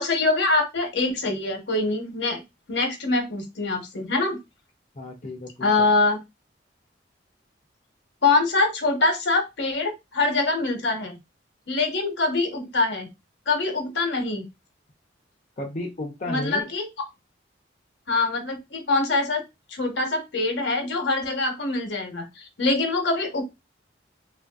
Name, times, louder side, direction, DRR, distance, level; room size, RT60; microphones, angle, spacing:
voice 1, 0.0-2.4 2.7-4.4 5.6-6.2 8.2-11.2 11.7-13.1 13.5-14.4 16.3-16.9 18.1-19.4 19.7-23.4, left 3 dB, 70° left, 4 dB, 0.9 m, -24 dB
voice 2, 5.0-5.9 15.6-16.7, left 2 dB, 40° left, -1 dB, 0.5 m, -33 dB
3.1 x 2.5 x 2.3 m, 0.22 s
head